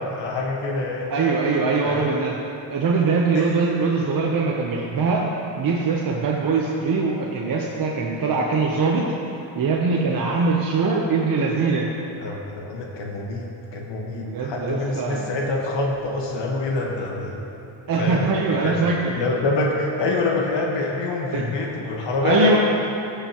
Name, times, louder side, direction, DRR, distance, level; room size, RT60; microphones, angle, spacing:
voice 1, 0.0-1.1 1.8-2.1 3.3-3.5 12.2-17.4 18.0-18.2 18.6-18.7 19.2-22.6, left 2 dB, 70° left, -1 dB, 1.5 m, -26 dB
voice 2, 1.1-2.4 2.7-5.2 5.5-9.0 9.5-11.9 14.2-15.3 17.9-19.1 21.3-21.5 22.2-22.6, right 4 dB, 45° right, -3 dB, 0.9 m, -22 dB
15.5 x 6.8 x 3.0 m, 2.9 s
cardioid pair, 110°, 45 cm